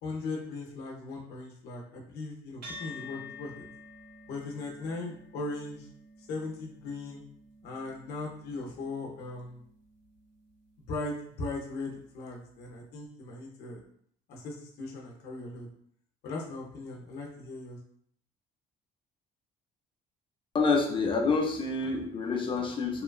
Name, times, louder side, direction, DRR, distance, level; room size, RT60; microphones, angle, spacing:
voice 1, 0.0-3.6 4.3-5.9 6.2-7.2 7.6-9.6 10.9-13.8 14.3-15.7 16.2-17.8, left 3 dB, 75° left, -1 dB, 0.6 m, -38 dB
sound 1, 2.6-11.3, left 3 dB, 85° right, 1.4 m, -50 dB
voice 2, 20.5-23.0, left 4 dB, 30° left, 3 dB, 0.5 m, -27 dB
2.9 x 2.2 x 2.3 m, 0.64 s
cardioid pair, 110°, 17 cm